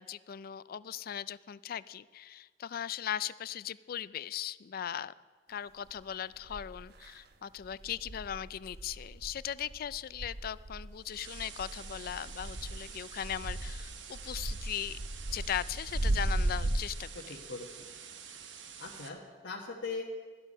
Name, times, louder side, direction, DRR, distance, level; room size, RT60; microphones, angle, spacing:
voice 1, 0.0-5.1 5.5-15.0 15.3-17.4, left 10 dB, 55° left, 18 dB, 0.4 m, -38 dB
sound 1, 5.9-6.0 6.5-7.1 7.6-16.8, right 1 dB, 60° right, 0.9 m, -36 dB
sound 2, 11.0-19.1, right 7 dB, 80° right, 1.0 m, -48 dB
voice 2, 17.1-17.8 18.8-20.1, left 4 dB, 90° left, -4 dB, 1.4 m, -40 dB
14.0 x 12.0 x 5.4 m, 1.5 s
head